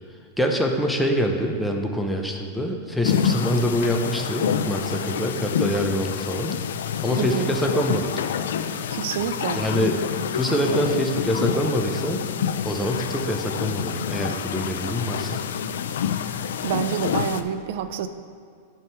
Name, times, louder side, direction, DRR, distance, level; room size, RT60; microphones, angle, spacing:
voice 1, 0.4-6.6 7.0-8.1 9.5-10.0 10.3-12.2 12.6-15.4, equal, 5° left, 2 dB, 0.7 m, -25 dB
sound 1, 3.0-17.4, left 8 dB, 80° left, 0.3 m, -27 dB
voice 2, 7.2-7.5 8.9-9.6 16.6-18.1, right 8 dB, 65° right, 10 dB, 0.4 m, -27 dB
9.7 x 3.7 x 4.6 m, 2.2 s
hypercardioid pair, 130°, 0 cm